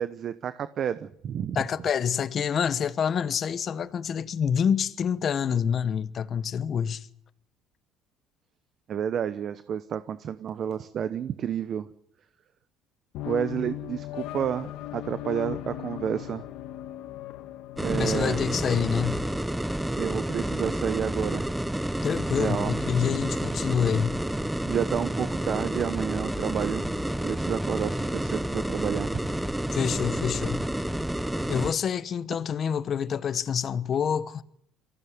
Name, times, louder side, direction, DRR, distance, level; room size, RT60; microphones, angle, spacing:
voice 1, 0.0-1.6 8.9-11.9 13.3-14.7 14.9-16.4 17.8-18.4 20.0-21.5 22.4-22.8 23.3-23.4 24.6-26.9 27.2-29.1, right 8 dB, 50° right, 1.0 m, -30 dB
voice 2, 1.5-7.1 17.9-19.3 22.0-24.1 29.7-30.7 31.5-34.4, left 7 dB, 45° left, 1.1 m, -27 dB
sound 1, 13.1-20.5, left 14 dB, 75° left, 1.5 m, -39 dB
sound 2, 17.8-31.7, right 1 dB, 5° right, 0.9 m, -30 dB
23.0 x 15.5 x 9.5 m
supercardioid pair, 100°, 0 cm